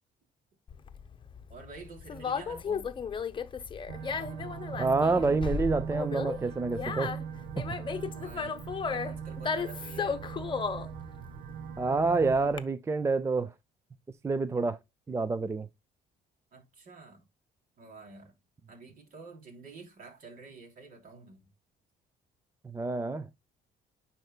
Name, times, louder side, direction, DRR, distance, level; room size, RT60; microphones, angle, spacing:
Conversation, 0.7-12.6, left 6 dB, 30° left, 0.8 m, -35 dB
voice 1, 1.5-2.9 8.1-10.3 16.5-17.2 17.8-18.3 18.7-21.5, right 4 dB, 55° right, 3.1 m, -49 dB
sound 1, 3.9-12.3, right 8 dB, 85° right, 0.6 m, -40 dB
voice 2, 4.8-7.1 11.8-13.5 14.2-14.8 15.1-15.7 22.6-23.3, right 3 dB, 15° right, 0.4 m, -28 dB
9.7 x 4.5 x 2.2 m
cardioid pair, 110°, 17 cm